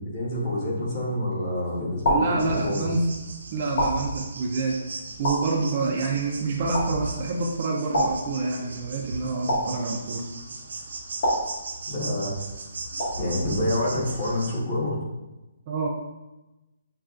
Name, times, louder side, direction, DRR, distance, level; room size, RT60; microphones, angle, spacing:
voice 1, 0.0-2.9 11.9-12.4 13.1-15.0, left 1 dB, 25° left, -6 dB, 1.1 m, -27 dB
sound 1, 0.9-1.4 2.0-3.0 3.8-4.6 5.2-6.1 6.7-7.4 7.9-8.8 9.5-10.4 11.2-12.2 13.0-13.6, equal, 40° left, 1.5 m, -29 dB
voice 2, 2.1-3.1 3.5-4.8 5.2-10.3 15.7-15.9, right 3 dB, 30° right, -2 dB, 0.4 m, -27 dB
sound 2, 2.4-14.6, right 3 dB, 75° right, 0.7 m, -37 dB
6.4 x 2.3 x 2.4 m, 1.0 s
hypercardioid pair, 175°, 0 cm